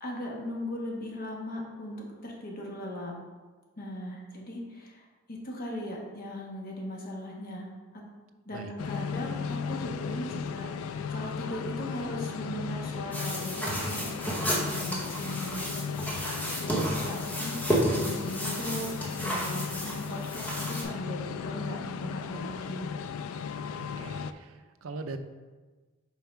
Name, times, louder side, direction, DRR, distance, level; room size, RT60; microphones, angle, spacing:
voice 1, 0.0-3.2 3.8-7.7 7.9-8.0 8.4-10.7 11.1-15.9 16.6-17.6 17.9-22.9, equal, 45° left, -2 dB, 1.3 m, -38 dB
sound 1, 8.8-24.3, left 6 dB, 80° left, 0.3 m, -36 dB
sound 2, 13.1-20.8, equal, 10° left, 1.0 m, -32 dB
voice 2, 23.8-25.2, right 3 dB, 75° right, 8 dB, 0.5 m, -41 dB
5.7 x 4.7 x 4.5 m, 1.3 s
head